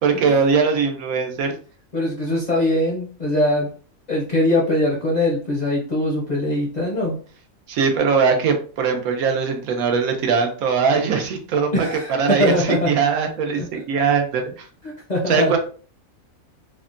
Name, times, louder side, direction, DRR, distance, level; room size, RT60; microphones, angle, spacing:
voice 1, 0.0-1.5 7.7-11.7 12.2-14.7 15.3-15.6, right 5 dB, 90° right, 4 dB, 1.1 m, -20 dB
voice 2, 1.9-3.7 4.1-7.2 11.7-12.9 13.6-13.7 14.8-15.6, left 1 dB, 45° left, -3 dB, 0.6 m, -22 dB
3.5 x 2.1 x 2.5 m, 0.41 s
omnidirectional pair, 1.5 m